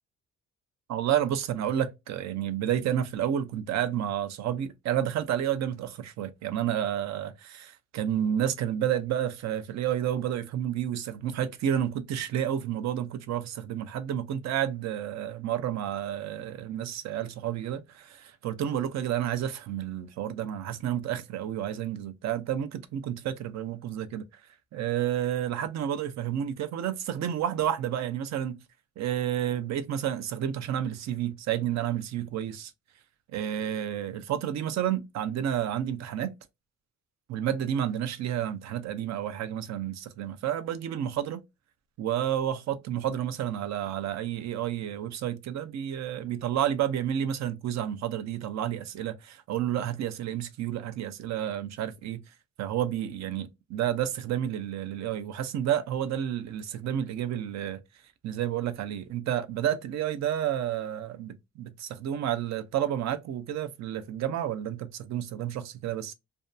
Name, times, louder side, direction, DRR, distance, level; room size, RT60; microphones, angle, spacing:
voice 1, 0.9-24.2 24.7-28.6 29.0-32.7 33.3-36.3 37.3-41.4 42.0-52.2 52.6-57.8 58.2-66.1, right 10 dB, 65° right, 0.5 m, -30 dB
2.6 x 2.2 x 2.3 m
cardioid pair, 90°, 30 cm